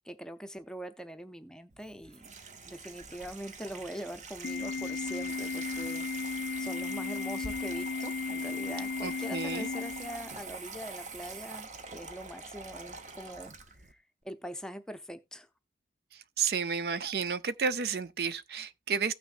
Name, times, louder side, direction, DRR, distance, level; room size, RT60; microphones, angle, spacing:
voice 1, 0.0-2.3 2.6-15.5, equal, 5° left, 0.6 m, -43 dB
Water tap faucet / Sink (filling or washing), 1.7-13.9, right 4 dB, 40° right, 0.8 m, -45 dB
Organ, 4.4-10.5, left 5 dB, 65° left, 0.4 m, -35 dB
voice 2, 9.0-9.7 16.1-19.1, right 6 dB, 60° right, 0.5 m, -32 dB
16.0 x 6.1 x 2.5 m
head